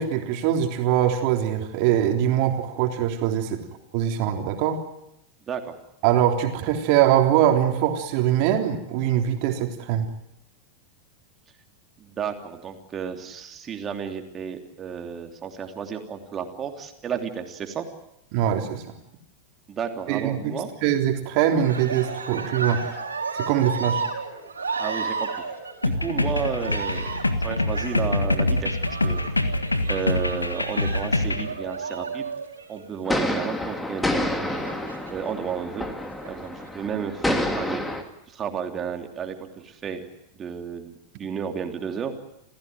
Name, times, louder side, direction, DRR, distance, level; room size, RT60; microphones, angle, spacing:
voice 1, 0.0-3.6 3.9-4.8 6.0-10.1 18.3-19.0 20.1-22.9 23.3-24.0, right 10 dB, 45° right, 4 dB, 3.4 m, -22 dB
voice 2, 12.0-17.9 19.7-20.7 24.8-25.3 25.8-27.1 27.4-28.8 29.0-29.2 29.9-32.3 32.7-34.6 35.1-35.9 36.3-37.8 38.3-40.0 40.3-42.1, right 7 dB, 25° right, 4 dB, 3.1 m, -32 dB
Cheering, 21.5-33.2 34.4-35.3 36.0-36.7, right 4 dB, 75° right, 4.3 m, -33 dB
sound 1, 25.8-31.5, left 2 dB, 80° left, 1.7 m, -25 dB
sound 2, 33.1-38.0, left 1 dB, 10° left, 2.6 m, -28 dB
28.5 x 16.0 x 9.4 m, 0.82 s
figure-of-eight pair, 90°, 0 cm